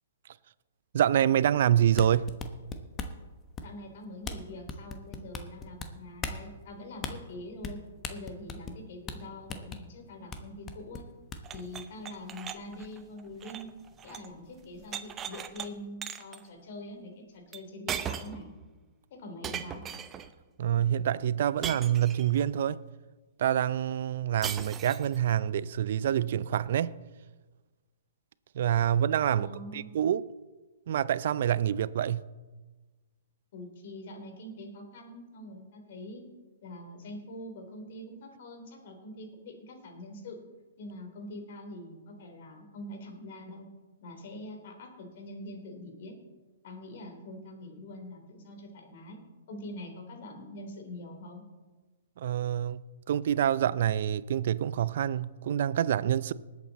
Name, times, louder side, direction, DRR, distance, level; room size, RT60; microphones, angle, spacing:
voice 1, 0.9-2.3 20.6-22.8 23.4-26.9 28.5-30.2 30.9-32.2 52.2-52.8 53.1-56.3, right 10 dB, 60° right, 0.5 m, -26 dB
sound 1, 1.8-3.2 3.6-3.9 4.2-4.4 4.7-5.9 6.2-6.4 7.0-7.1 7.6-7.8 8.0-8.8 9.1-9.2 9.5-9.8 10.3-10.4 10.7-11.6, left 4 dB, 20° left, 1.1 m, -37 dB
voice 2, 3.6-7.8 8.1-11.1 11.5-13.7 14.0-18.5 19.1-19.8 29.4-29.9 33.5-36.2 36.6-40.4 40.8-43.6 44.0-46.2 46.6-49.2 49.5-51.4, left 1 dB, 55° left, 3.3 m, -44 dB
sound 2, 11.4-14.3 14.6-15.7 16.0-16.4 17.5-17.6 17.9-18.5 19.4-20.3 21.6-22.4 24.4-25.2, right 8 dB, 20° right, 0.7 m, -38 dB
19.5 x 8.4 x 4.2 m
hypercardioid pair, 135°, 0 cm